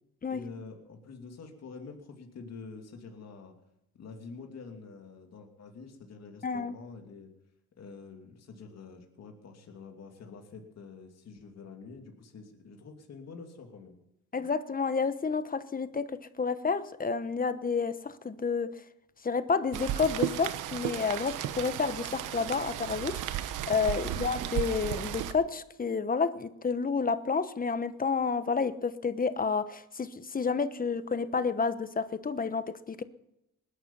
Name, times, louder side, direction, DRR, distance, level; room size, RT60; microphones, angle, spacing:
voice 1, 0.3-3.5 3.9-7.3 7.8-14.0 23.9-24.2, left 4 dB, 60° left, 3 dB, 2.8 m, -47 dB
voice 2, 6.4-6.7 14.3-18.8 19.2-23.2 23.7-33.0, left 5 dB, 30° left, 13 dB, 1.1 m, -30 dB
Rain, 19.7-25.3, right 11 dB, 85° right, 1.1 m, -34 dB
20.0 x 11.5 x 5.6 m, 0.84 s
cardioid pair, 90°, 30 cm